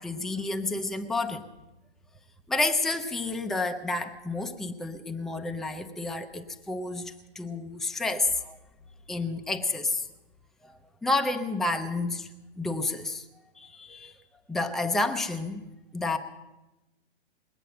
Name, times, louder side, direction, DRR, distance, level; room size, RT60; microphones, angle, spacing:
voice 1, 0.0-1.4 2.5-8.6 9.1-10.1 10.6-12.3 12.6-13.2 13.6-14.2 14.5-15.7 15.9-16.2, left 2 dB, ahead, 6 dB, 0.6 m, -30 dB
20.5 x 9.0 x 6.9 m, 1.0 s
hypercardioid pair, 130°, 33 cm